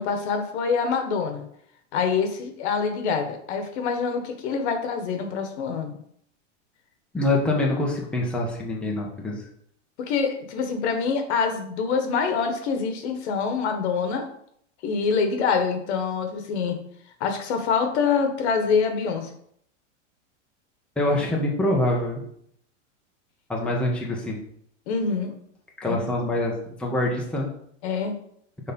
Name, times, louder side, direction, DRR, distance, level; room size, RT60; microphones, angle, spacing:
voice 1, 0.0-1.4 1.9-6.0 10.0-14.3 14.8-16.8 17.2-19.3 24.9-25.3 25.8-26.1 27.8-28.1, left 5 dB, 60° left, 6 dB, 1.5 m, -25 dB
voice 2, 7.1-9.4 21.0-22.2 23.5-24.4 25.8-27.5, left 1 dB, 5° left, -2 dB, 1.0 m, -25 dB
6.3 x 4.2 x 5.3 m, 0.68 s
supercardioid pair, 145°, 37 cm